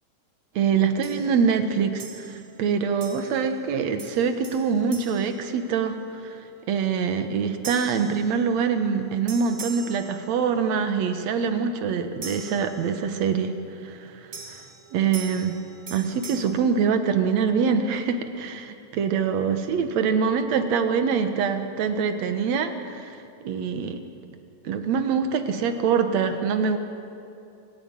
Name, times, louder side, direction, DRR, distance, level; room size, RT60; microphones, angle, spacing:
voice 1, 0.6-6.4 6.7-13.5 13.8-14.6 14.9-15.6 15.9-23.2 23.4-24.0 24.6-26.8, right 6 dB, 60° right, 8 dB, 2.1 m, -24 dB
sound 1, 1.0-1.4 2.0-2.6 3.0-3.6 4.0-6.1 7.6-8.8 9.3-10.7 12.2-13.2 14.3-16.4, right 4 dB, 30° right, 2.1 m, -42 dB
27.5 x 12.5 x 8.9 m, 2.6 s
omnidirectional pair, 3.9 m